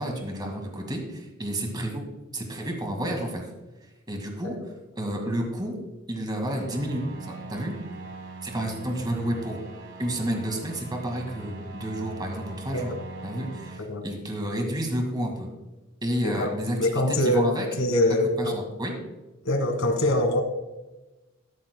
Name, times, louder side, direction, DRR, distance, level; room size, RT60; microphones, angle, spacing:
voice 1, 0.0-2.0 2.3-3.5 4.1-4.6 4.9-5.8 6.1-7.8 8.4-9.6 10.0-12.9 13.2-15.5 16.0-17.7 18.4-19.0, right 1 dB, 20° right, 2 dB, 1.9 m, -30 dB
sound 1, 6.5-13.8, right 2 dB, 65° right, 1.5 m, -41 dB
voice 2, 16.8-18.6 19.5-20.4, left 1 dB, 90° left, 6 dB, 1.6 m, -24 dB
13.0 x 13.0 x 2.2 m, 1.1 s
head